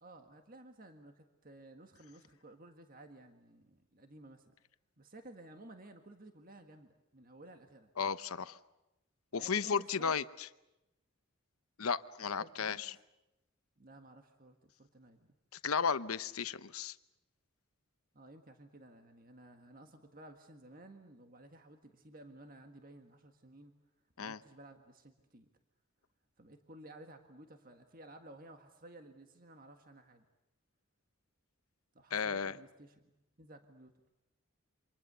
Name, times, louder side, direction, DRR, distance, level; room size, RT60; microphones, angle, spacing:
voice 1, 0.0-4.5 5.0-7.9 9.3-10.1 12.4-12.8 13.8-15.3 18.1-23.7 24.2-25.5 26.4-30.3 31.9-33.9, right 1 dB, 40° right, 5 dB, 1.7 m, -55 dB
voice 2, 8.0-8.6 9.3-10.2 11.8-13.0 15.6-16.9 24.2-24.4 32.1-32.5, left 6 dB, 90° left, 14 dB, 0.9 m, -34 dB
28.5 x 26.5 x 6.9 m, 0.95 s
head